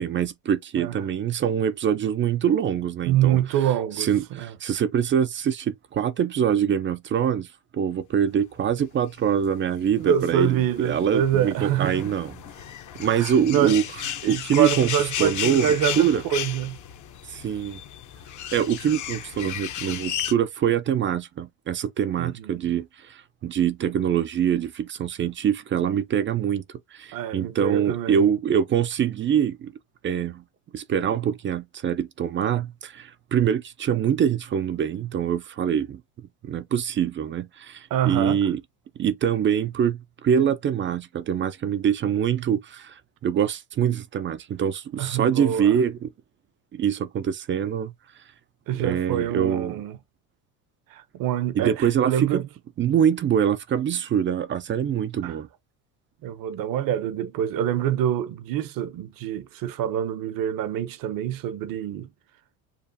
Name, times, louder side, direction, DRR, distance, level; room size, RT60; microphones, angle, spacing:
voice 1, 0.0-3.4 4.0-7.5 7.7-12.4 12.9-13.8 14.3-14.9 15.2-16.2 17.3-17.8 18.5-26.6 26.9-29.7 30.0-30.4 30.7-36.0 36.4-38.6 39.0-46.1 46.7-47.9 48.8-49.8 51.5-52.4 52.8-55.5, right 8 dB, 30° right, 0.4 m, -24 dB
voice 2, 3.0-4.5 10.0-12.1 13.0-13.8 14.2-16.8 22.2-22.7 27.1-28.3 37.9-38.4 45.0-45.8 48.7-50.0 50.9-52.5 55.2-55.4 56.2-62.1, right 10 dB, 55° right, 0.8 m, -26 dB
sound 1, 9.2-20.3, left 10 dB, 45° left, 0.8 m, -34 dB
6.9 x 2.4 x 2.7 m
supercardioid pair, 100°, 42 cm